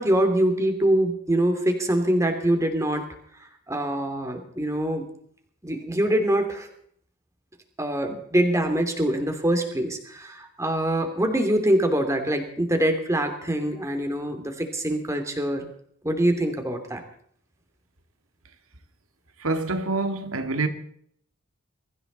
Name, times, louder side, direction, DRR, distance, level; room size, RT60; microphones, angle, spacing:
voice 1, 0.0-3.0 3.7-5.0 5.6-6.7 7.8-15.7 16.0-17.0, right 1 dB, 15° right, 2.9 m, -24 dB
voice 2, 19.4-20.7, right 3 dB, 75° right, 2.2 m, -26 dB
23.0 x 15.0 x 4.1 m
head